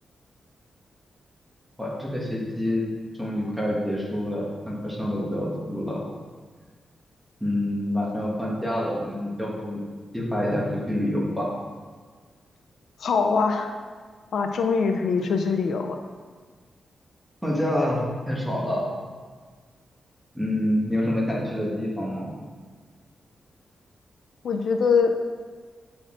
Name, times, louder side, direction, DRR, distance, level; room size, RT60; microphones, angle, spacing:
voice 1, 1.8-2.8 3.2-6.0 7.4-9.8 10.1-11.5 17.4-18.8 20.3-22.3, left 1 dB, ahead, -4 dB, 1.3 m, -27 dB
voice 2, 13.0-13.7 14.3-16.0 24.4-25.1, left 5 dB, 70° left, 5 dB, 0.4 m, -23 dB
7.8 x 4.3 x 3.7 m, 1.5 s
wide cardioid pair, 150°, 0 cm